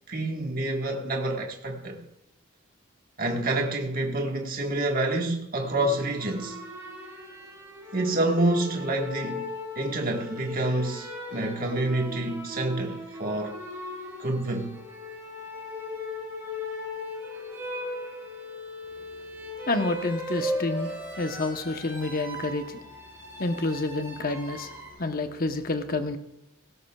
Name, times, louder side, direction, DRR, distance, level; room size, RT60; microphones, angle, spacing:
voice 1, 0.1-2.0 3.2-6.6 7.9-13.6 14.2-14.8, right 2 dB, 45° right, 1.5 m, -28 dB
sound 1, 5.6-24.9, left 1 dB, 15° right, 5.5 m, -38 dB
voice 2, 19.7-20.9 21.2-22.8 23.4-24.7 25.0-26.2, left 2 dB, 45° left, 1.0 m, -28 dB
17.5 x 17.0 x 2.4 m
head